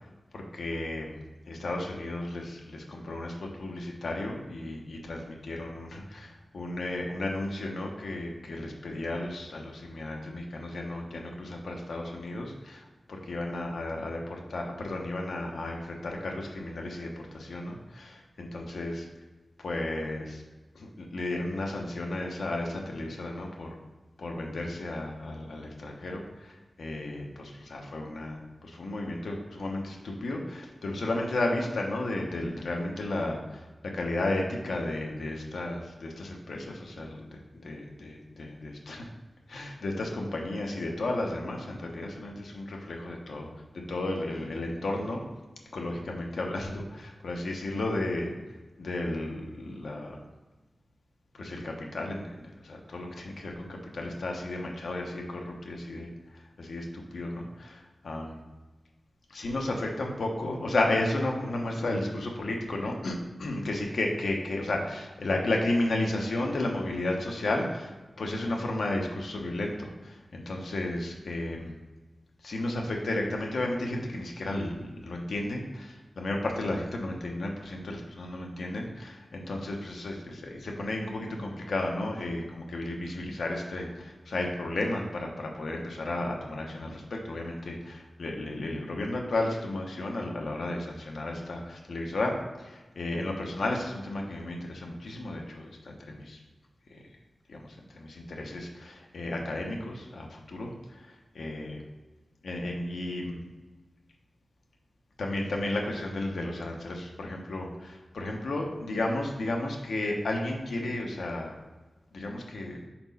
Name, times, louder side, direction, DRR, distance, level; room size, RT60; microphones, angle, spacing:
voice 1, 0.3-1.2 1.5-19.1 19.6-20.4 20.7-23.8 24.2-39.1 39.5-43.5 43.7-45.2 45.7-48.3 48.8-50.2 51.3-56.1 56.6-58.4 59.3-67.9 68.2-71.7 72.4-96.4 96.9-97.0 97.5-101.8 102.4-103.4 105.2-111.5 112.1-112.8, left 2 dB, 90° left, 0 dB, 0.8 m, -33 dB
4.4 x 4.0 x 5.3 m, 1.2 s
wide cardioid pair, 110°, 0 cm